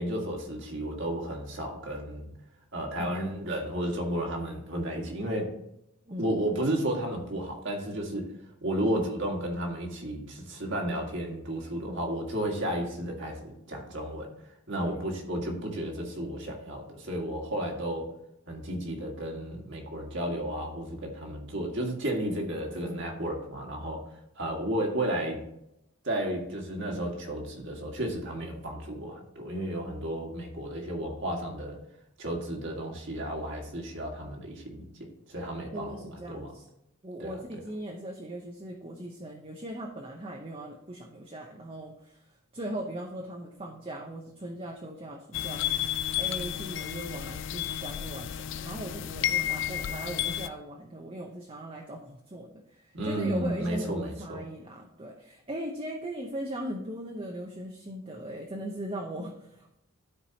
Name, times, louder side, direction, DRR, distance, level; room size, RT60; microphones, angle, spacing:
voice 1, 0.0-2.3 2.7-5.5 6.2-8.3 8.6-14.3 14.7-18.1 18.5-24.0 24.4-25.4 26.0-31.8 32.2-36.5 37.2-37.3 52.9-54.4, right 1 dB, 55° right, 1 dB, 1.8 m, -33 dB
voice 2, 22.8-23.2 35.7-36.7 37.0-59.8, right 1 dB, 25° right, 0 dB, 0.7 m, -39 dB
sound 1, 45.3-50.5, left 11 dB, 55° left, 0.3 m, -32 dB
13.0 x 4.6 x 2.8 m, 0.82 s
head